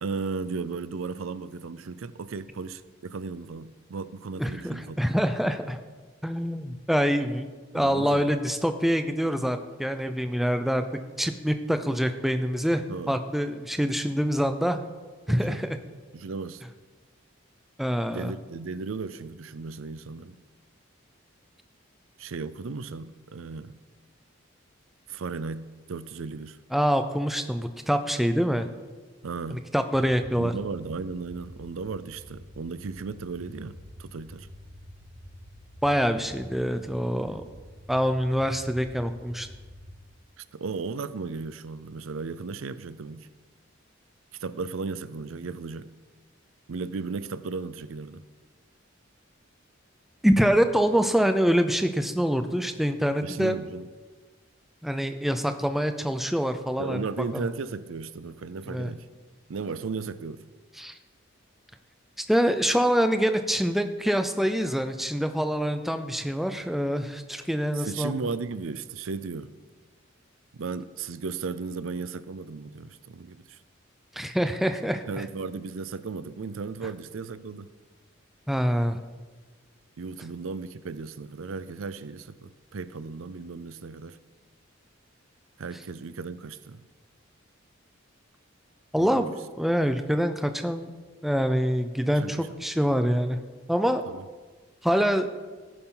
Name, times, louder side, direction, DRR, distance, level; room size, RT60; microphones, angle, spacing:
voice 1, 0.0-5.2 7.7-8.3 12.9-13.2 15.3-15.6 16.1-16.6 18.1-20.3 22.2-23.7 25.1-26.6 29.2-29.7 30.3-34.5 40.4-43.3 44.4-45.9 46.7-48.2 53.2-53.9 56.8-59.1 59.5-60.5 67.7-69.5 70.5-73.6 75.1-77.7 80.0-84.2 85.6-86.8 89.0-89.3 92.1-92.5 94.1-94.3, right 4 dB, 80° right, 0.5 m, -35 dB
voice 2, 4.4-5.8 6.2-7.5 7.7-10.9 11.2-14.8 15.3-15.7 17.8-18.3 26.7-28.7 29.5-30.5 35.8-37.4 37.9-39.5 50.2-53.5 54.8-57.0 57.3-57.4 58.7-58.9 60.8-60.9 62.3-68.1 74.2-75.2 78.5-79.0 88.9-89.3 89.6-90.9 91.2-93.4 93.7-94.0 94.8-95.3, equal, ahead, 0.5 m, -25 dB
sound 1, 30.0-40.0, equal, 60° right, 3.1 m, -47 dB
14.5 x 10.0 x 3.9 m
head